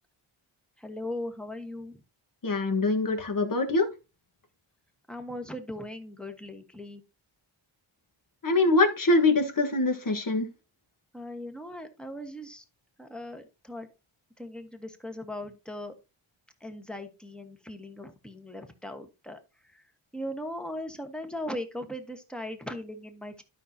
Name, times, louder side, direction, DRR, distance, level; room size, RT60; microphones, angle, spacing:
voice 1, 0.8-2.0 5.1-7.0 11.1-12.6 13.0-13.9 14.4-15.9 16.6-19.4 20.1-23.4, left 1 dB, ahead, 6 dB, 1.3 m, -38 dB
voice 2, 2.4-3.9 8.4-10.5, left 2 dB, 40° left, 5 dB, 1.5 m, -24 dB
12.0 x 5.6 x 2.8 m, 0.29 s
wide cardioid pair, 105°, 49 cm